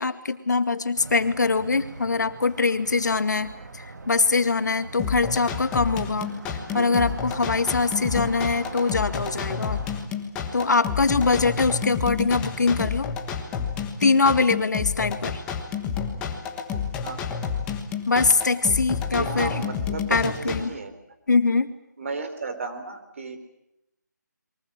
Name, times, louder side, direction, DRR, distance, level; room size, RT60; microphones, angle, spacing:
voice 1, 0.0-6.3 6.7-9.8 10.5-13.1 14.0-15.4 18.1-19.6 20.1-20.7 21.3-21.7, left 4 dB, 65° left, 9 dB, 2.1 m, -23 dB
sound 1, 0.9-10.1, right 3 dB, 65° right, 2.5 m, -41 dB
sound 2, 5.0-20.6, left 6 dB, 10° left, 1.4 m, -30 dB
voice 2, 6.7-7.0 17.0-17.3 19.1-20.9 22.0-23.4, right 4 dB, 40° right, 8 dB, 3.8 m, -34 dB
30.0 x 23.0 x 7.5 m, 0.84 s
figure-of-eight pair, 170°, 10 cm